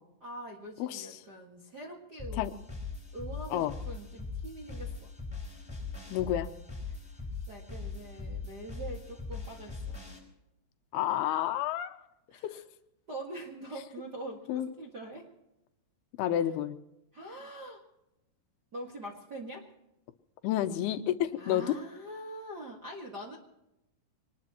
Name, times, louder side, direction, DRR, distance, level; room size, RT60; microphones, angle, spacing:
voice 1, 0.2-2.5 3.1-5.1 7.5-10.0 12.3-12.6 13.1-15.2 17.1-17.8 18.7-19.7 21.3-23.4, right 1 dB, 45° right, -2 dB, 1.4 m, -43 dB
voice 2, 0.8-1.2 2.4-2.5 3.5-3.8 6.1-6.5 10.9-12.0 12.4-12.6 14.5-14.7 16.2-16.8 20.4-21.7, left 12 dB, 80° left, 9 dB, 2.6 m, -30 dB
sound 1, 2.2-10.2, left 4 dB, 5° left, 3.9 m, -40 dB
24.5 x 19.5 x 3.0 m, 0.89 s
omnidirectional pair, 4.7 m